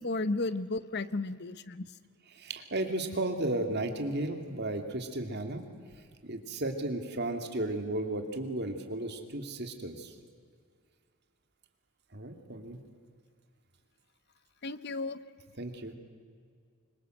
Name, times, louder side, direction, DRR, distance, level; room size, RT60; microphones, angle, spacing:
voice 1, 0.0-1.9 14.6-15.2, left 2 dB, 50° left, 15 dB, 0.9 m, -33 dB
voice 2, 2.3-5.6 6.2-10.1 12.1-12.8 15.6-15.9, right 1 dB, 50° right, 5 dB, 2.6 m, -34 dB
25.0 x 23.0 x 7.9 m, 2.1 s
head